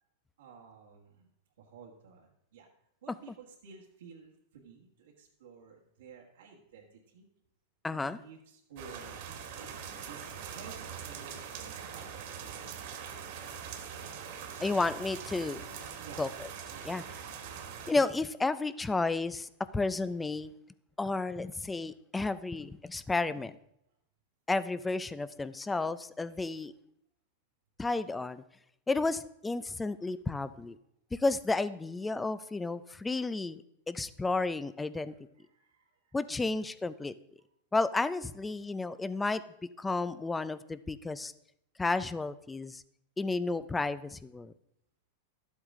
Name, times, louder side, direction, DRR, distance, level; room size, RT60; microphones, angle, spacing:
voice 1, 0.4-1.3 1.6-2.7 3.0-7.3 7.9-10.3 10.5-12.2 16.0-16.3 16.7-17.1 26.2-26.4 35.1-36.5, right 5 dB, 85° right, -4 dB, 1.7 m, -53 dB
voice 2, 7.8-8.2 14.6-15.6 16.2-16.3 16.8-17.0 17.9-20.5 21.0-23.5 24.5-26.7 27.8-28.4 28.9-30.8 31.1-35.1 36.1-37.1 37.7-39.4 39.8-41.3 41.8-42.8 43.2-44.5, left 3 dB, 10° left, 16 dB, 0.4 m, -32 dB
sound 1, 8.8-17.9, right 7 dB, 60° right, 1.7 m, -43 dB
11.5 x 8.1 x 3.7 m, 0.76 s
supercardioid pair, 135°, 0 cm